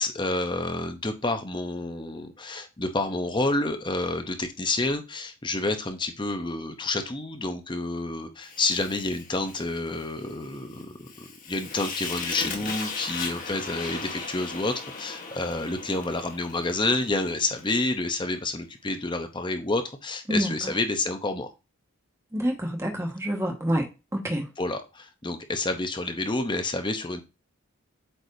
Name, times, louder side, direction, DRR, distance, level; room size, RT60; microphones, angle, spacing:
voice 1, 0.0-21.5 24.6-27.2, left 2 dB, 20° left, 0.7 m, -29 dB
Fire, 8.4-17.7, left 4 dB, 35° left, 1.4 m, -38 dB
voice 2, 22.3-23.8 24.1-24.4, equal, 15° right, 1.5 m, -27 dB
8.0 x 4.8 x 2.7 m
head